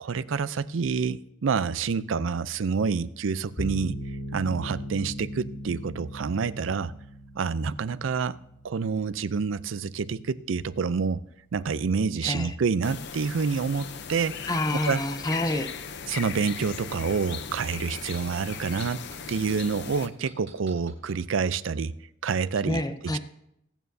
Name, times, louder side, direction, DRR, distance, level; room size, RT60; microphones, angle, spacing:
voice 1, 0.0-4.0 4.3-6.9 7.4-8.4 8.6-11.2 11.5-14.5 14.8-15.0 16.1-21.9 22.2-22.8 23.1-23.2, right 5 dB, 85° right, 16 dB, 0.5 m, -28 dB
sound 1, 3.6-10.7, equal, 45° left, 4.7 m, -39 dB
voice 2, 12.2-12.5 14.5-15.7 22.7-23.2, left 1 dB, 20° left, 9 dB, 0.7 m, -28 dB
sound 2, 12.8-20.1, left 7 dB, 60° left, 0.7 m, -38 dB
sound 3, 16.3-19.5 20.0-21.2 21.7-21.8, right 5 dB, 60° right, 3.4 m, -49 dB
21.5 x 9.0 x 2.7 m, 0.77 s
head